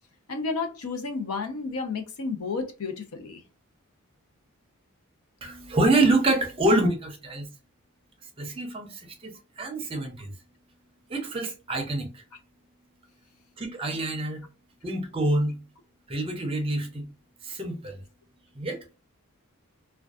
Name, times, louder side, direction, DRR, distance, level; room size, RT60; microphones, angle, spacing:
voice 1, 0.3-3.4, left 4 dB, 80° left, 0.6 m, -31 dB
voice 2, 5.4-7.5 8.4-9.3 9.6-10.3 11.1-12.2 13.6-14.4 14.8-15.6 16.1-17.1 17.4-18.0 18.6-18.9, right 2 dB, 25° right, 0.5 m, -26 dB
2.5 x 2.3 x 2.3 m
head